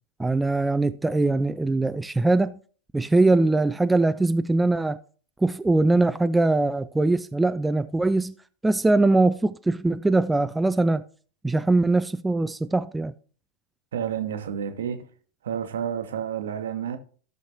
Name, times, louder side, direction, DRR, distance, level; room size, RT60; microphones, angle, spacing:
voice 1, 0.2-2.5 2.9-5.0 5.4-8.3 8.6-11.0 11.4-13.1, right 2 dB, 5° right, 0.3 m, -22 dB
voice 2, 13.9-15.1 15.4-17.0, right 8 dB, 60° right, 1.1 m, -30 dB
15.0 x 6.4 x 2.8 m
figure-of-eight pair, 90°, 0 cm